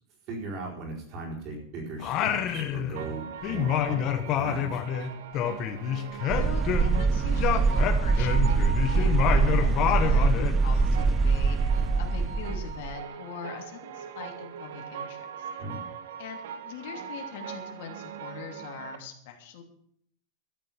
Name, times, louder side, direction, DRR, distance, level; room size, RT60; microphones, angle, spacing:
voice 1, 0.3-5.1 9.9-10.1 11.7-11.9 15.6-15.8, right 3 dB, 35° right, -1 dB, 4.6 m, -38 dB
Singing, 2.0-3.2 3.4-7.1 7.4-10.6, left 10 dB, 30° left, 1.3 m, -28 dB
sound 1, 3.0-19.0, right 7 dB, 80° right, 1.4 m, -41 dB
voice 2, 6.3-15.5 16.2-16.4 16.6-19.6, left 6 dB, 65° left, 3 dB, 2.9 m, -42 dB
sound 2, 6.3-12.9, right 4 dB, 15° right, 0.4 m, -24 dB
13.0 x 7.6 x 9.0 m, 0.65 s
supercardioid pair, 175°, 0 cm